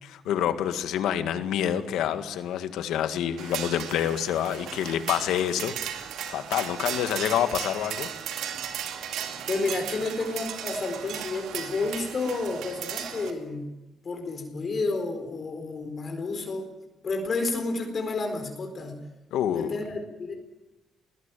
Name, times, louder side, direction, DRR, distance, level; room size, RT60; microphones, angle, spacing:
voice 1, 0.0-5.7 6.3-8.1 19.3-19.7, left 10 dB, 85° left, 9 dB, 1.8 m, -27 dB
sound 1, 3.4-13.3, right 9 dB, 85° right, 2.4 m, -36 dB
voice 2, 9.5-13.7 14.0-16.7 17.0-19.0 19.5-20.3, left 3 dB, 45° left, 5 dB, 4.4 m, -30 dB
21.0 x 19.0 x 9.2 m, 1.0 s
cardioid pair, 90°, 0 cm